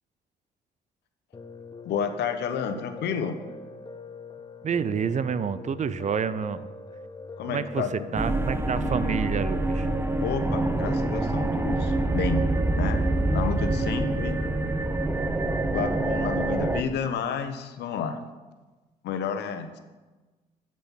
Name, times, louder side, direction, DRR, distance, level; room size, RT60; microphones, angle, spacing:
Piano, 1.3-15.0, left 5 dB, 25° left, 0.7 m, -43 dB
voice 1, 1.8-3.4 7.4-8.3 8.6-8.9 10.2-12.4 12.7-13.0 13.3-14.4 15.7-18.2 19.0-19.8, left 7 dB, 75° left, 8 dB, 0.9 m, -31 dB
voice 2, 4.6-6.7 7.4-9.9, right 7 dB, 40° right, 15 dB, 0.6 m, -28 dB
sound 1, 8.2-16.8, right 2 dB, 15° right, 0.8 m, -26 dB
7.6 x 7.0 x 5.8 m, 1.2 s
supercardioid pair, 60°, 18 cm